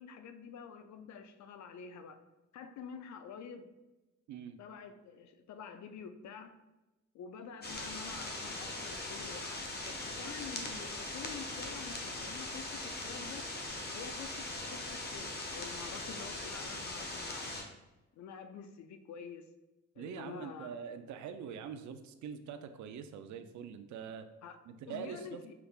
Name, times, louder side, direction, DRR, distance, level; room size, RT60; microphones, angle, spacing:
voice 1, 0.0-2.2 2.5-3.7 4.6-6.6 7.1-13.4 13.9-17.5 18.1-19.5 20.0-20.7 24.4-24.6 24.9-25.5, left 6 dB, 65° left, 9 dB, 0.5 m, -48 dB
sound 1, 7.6-17.6, left 2 dB, 35° left, 0.9 m, -40 dB
voice 2, 20.0-24.3 24.7-25.4, right 7 dB, 70° right, 9 dB, 0.5 m, -44 dB
5.8 x 3.3 x 2.4 m, 1.0 s
cardioid pair, 90°, 30 cm